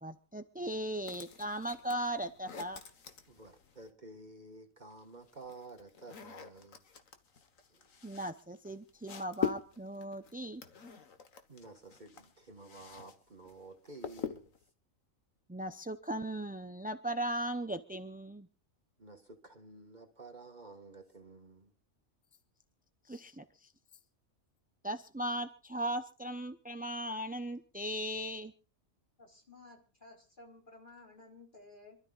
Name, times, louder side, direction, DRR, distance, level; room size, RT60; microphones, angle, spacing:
voice 1, 0.0-2.8 8.0-10.6 15.5-18.5 23.1-23.7 24.8-28.5, right 1 dB, 10° right, 0.4 m, -38 dB
sound 1, 1.0-3.9 4.9-13.2 13.4-14.7, left 8 dB, 75° left, 1.8 m, -43 dB
voice 2, 3.3-6.8 7.7-7.8 11.5-14.5 19.0-21.7, right 2 dB, 35° right, 1.8 m, -52 dB
voice 3, 29.2-32.0, left 2 dB, 35° left, 4.4 m, -55 dB
27.0 x 13.0 x 2.5 m
omnidirectional pair, 1.4 m